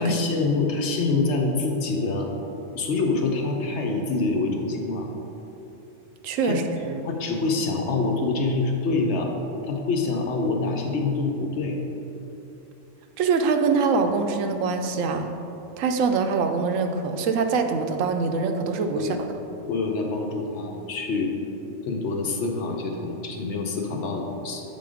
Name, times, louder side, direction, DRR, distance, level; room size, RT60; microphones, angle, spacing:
voice 1, 0.0-2.3 2.7-5.1 6.4-6.6 7.0-9.3 9.6-11.8 19.0-19.2 19.6-21.3 21.8-24.6, left 3 dB, 65° left, 2 dB, 1.0 m, -26 dB
voice 2, 6.2-7.0 13.2-15.3 15.8-19.2, right 4 dB, 80° right, 6 dB, 0.9 m, -24 dB
7.6 x 3.9 x 4.9 m, 3.0 s
omnidirectional pair, 1.3 m